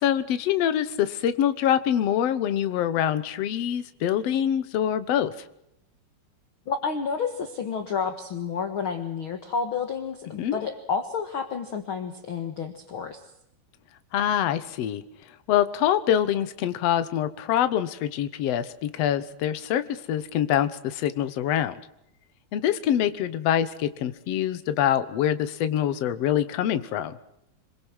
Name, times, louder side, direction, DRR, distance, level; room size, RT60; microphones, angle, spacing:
voice 1, 0.0-5.3 10.4-10.6 14.1-15.0 15.5-21.8 22.5-27.2, left 10 dB, 70° left, 12 dB, 1.5 m, -25 dB
voice 2, 6.7-13.2, left 6 dB, 50° left, 6 dB, 1.7 m, -30 dB
26.5 x 22.5 x 6.3 m, 0.79 s
omnidirectional pair, 4.5 m